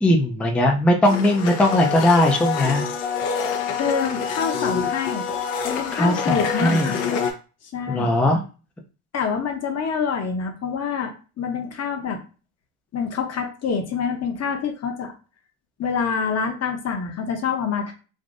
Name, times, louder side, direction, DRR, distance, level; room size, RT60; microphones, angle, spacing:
voice 1, 0.0-2.8 5.9-6.9 7.9-8.4, left 1 dB, ahead, 1 dB, 0.5 m, -19 dB
Domestic sounds home sounds, 1.1-7.3, left 6 dB, 65° left, 0.9 m, -26 dB
voice 2, 3.8-5.3 5.6-7.0 7.7-8.1 9.1-12.2 12.9-15.1 15.8-17.9, left 6 dB, 30° left, 4 dB, 1.0 m, -26 dB
3.6 x 2.5 x 2.5 m, 0.34 s
hypercardioid pair, 75°, 49 cm